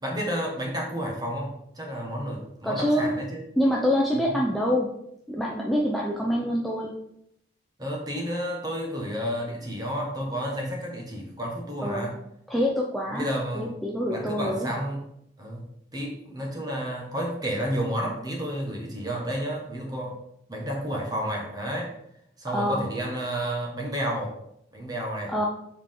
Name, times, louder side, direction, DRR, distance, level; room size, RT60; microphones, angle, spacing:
voice 1, 0.0-3.4 4.1-4.4 7.8-12.2 13.1-13.7 14.1-15.0 15.4-15.6 15.9-20.2 20.5-22.0 22.4-24.4 24.7-25.3, equal, 20° right, 0 dB, 1.4 m, -31 dB
voice 2, 2.6-3.1 3.6-4.9 5.3-6.9 11.8-12.1 12.5-13.3 13.5-14.7 22.5-22.9 25.3-25.5, equal, ahead, -3 dB, 0.6 m, -25 dB
7.2 x 4.9 x 3.7 m, 0.76 s
head